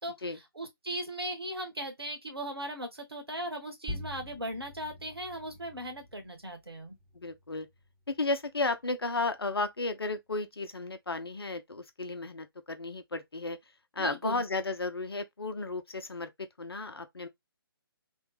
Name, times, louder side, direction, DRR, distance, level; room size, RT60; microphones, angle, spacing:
voice 1, 0.0-6.9 14.0-14.4, right 1 dB, 80° right, 1.4 m, -38 dB
sound 1, 3.9-8.9, left 1 dB, 5° right, 0.7 m, -46 dB
voice 2, 7.1-7.7 8.1-13.6 13.9-17.3, left 3 dB, 80° left, 0.8 m, -34 dB
3.4 x 2.3 x 3.1 m
figure-of-eight pair, 140°, 13 cm